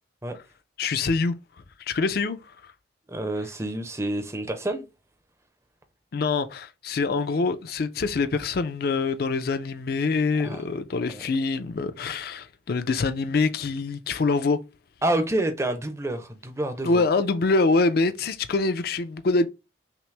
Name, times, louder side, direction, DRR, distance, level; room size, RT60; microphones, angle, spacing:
voice 1, 0.8-1.4 1.8-2.4 2.6-2.7 6.1-14.6 16.8-19.5, left 3 dB, 50° left, 0.4 m, -25 dB
voice 2, 3.1-4.9 10.4-10.6 11.1-11.3 15.0-17.0, right 1 dB, 15° right, 0.6 m, -28 dB
5.7 x 2.0 x 3.2 m
head